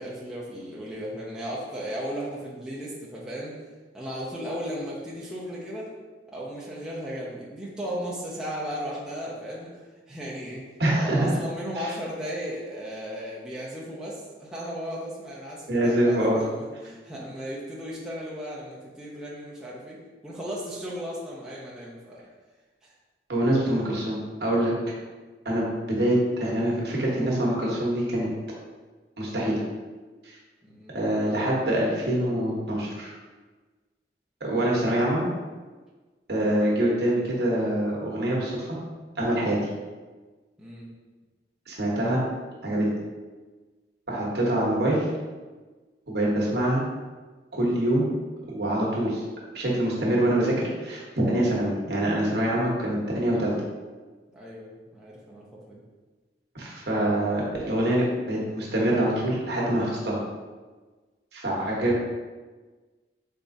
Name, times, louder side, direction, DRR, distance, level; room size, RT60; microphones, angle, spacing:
voice 1, 0.0-3.6 3.9-5.9 6.3-9.7 10.1-10.6 10.9-22.2 30.6-31.0 40.6-40.9 54.3-55.8, equal, 5° right, -7 dB, 0.5 m, -36 dB
voice 2, 10.8-11.3 11.8-11.9 15.7-16.4 23.3-24.7 25.4-28.3 29.2-29.6 30.2-30.3 30.9-33.1 34.4-35.2 36.3-38.7 39.2-39.6 41.7-42.2 42.6-42.9 44.1-45.1 46.1-46.8 47.5-48.0 48.5-49.2 49.5-53.5 56.5-60.2 61.3-62.0, right 1 dB, 65° right, -4 dB, 1.0 m, -25 dB
4.1 x 3.5 x 2.6 m, 1.3 s
head